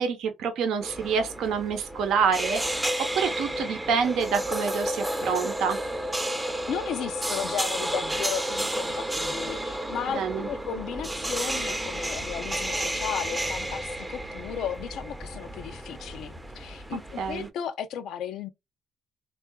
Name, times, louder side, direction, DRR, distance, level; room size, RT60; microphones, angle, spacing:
voice 1, 0.0-5.8 10.1-10.5 17.2-17.5, right 6 dB, 85° right, 0.7 m, -27 dB
sound 1, 0.8-17.5, right 1 dB, 10° right, 0.5 m, -32 dB
voice 2, 6.4-18.5, left 8 dB, 80° left, 0.4 m, -35 dB
3.6 x 2.3 x 2.2 m
cardioid pair, 90°, 0 cm